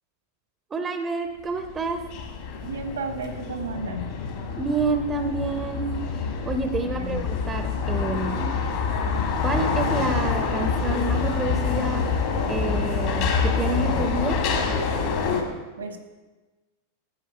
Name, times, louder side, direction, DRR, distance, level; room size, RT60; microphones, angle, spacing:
voice 1, 0.7-2.0 4.6-5.9 6.4-8.6 9.4-12.1 12.5-14.4, right 3 dB, 20° right, 7 dB, 0.7 m, -28 dB
sound 1, 1.5-15.4, left 5 dB, 50° left, 1.5 m, -26 dB
voice 2, 2.6-4.1 6.8-7.2 15.8-16.0, right 3 dB, 70° right, 6 dB, 1.2 m, -33 dB
9.7 x 5.2 x 5.5 m, 1.2 s
figure-of-eight pair, 90°, 0 cm